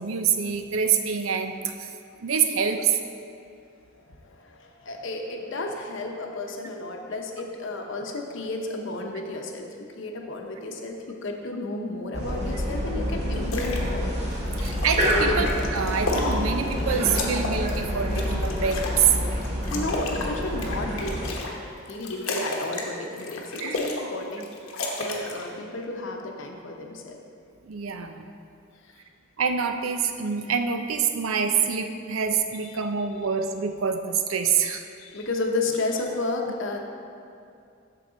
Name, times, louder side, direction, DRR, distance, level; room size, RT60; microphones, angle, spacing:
voice 1, 0.0-1.9 2.2-3.0 14.6-19.2 23.6-23.8 27.6-28.2 29.4-34.8, right 6 dB, 85° right, 6 dB, 0.6 m, -26 dB
voice 2, 4.1-14.1 15.1-15.4 19.7-21.4 21.9-24.5 25.0-27.2 28.8-28.9 35.0-36.8, left 2 dB, 65° left, 2 dB, 0.8 m, -32 dB
sound 1, 12.1-21.3, equal, 30° right, 1.3 m, -27 dB
sound 2, 13.3-13.8 14.2-16.8 17.1-19.0 19.4-21.5 21.9-22.9 23.2-24.1 24.3-25.5, left 2 dB, 85° left, 1.1 m, -32 dB
8.6 x 6.6 x 3.9 m, 2.5 s
head